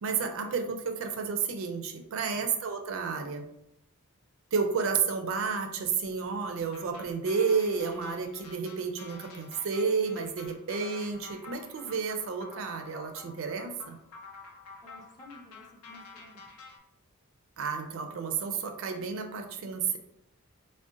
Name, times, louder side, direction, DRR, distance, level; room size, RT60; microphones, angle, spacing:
voice 1, 0.0-3.4 4.5-14.0 17.6-20.0, right 5 dB, 65° right, 6 dB, 0.4 m, -31 dB
sound 1, 6.7-16.8, left 4 dB, 75° left, 0.5 m, -49 dB
voice 2, 14.8-16.5, left 1 dB, 20° left, 0 dB, 0.4 m, -53 dB
3.7 x 2.1 x 2.4 m, 0.79 s
head